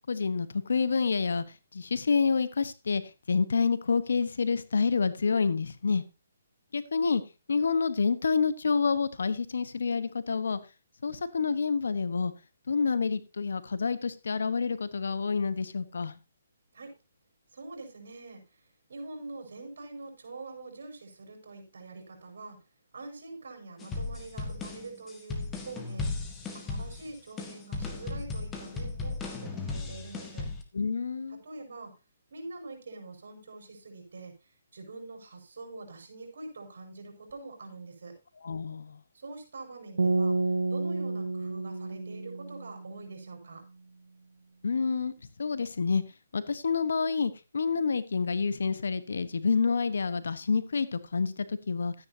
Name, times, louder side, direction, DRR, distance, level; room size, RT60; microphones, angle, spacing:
voice 1, 0.1-1.4 1.7-3.0 3.3-6.0 6.7-7.2 7.5-10.6 11.0-12.3 12.7-16.2 30.7-31.4 38.4-39.0 44.6-45.1 45.4-46.0 46.3-51.9, left 5 dB, 75° left, 14 dB, 1.1 m, -28 dB
voice 2, 17.5-18.6 18.9-22.6 22.9-26.1 26.5-30.5 31.3-31.9 32.3-34.3 34.7-38.1 39.1-40.4 40.7-43.6, right 3 dB, 70° right, 3 dB, 5.5 m, -44 dB
sound 1, 23.8-30.6, left 3 dB, 15° left, 1.6 m, -36 dB
sound 2, 40.0-43.2, right 3 dB, 85° right, 1.8 m, -30 dB
12.5 x 9.8 x 2.8 m, 0.28 s
hypercardioid pair, 150°, 0 cm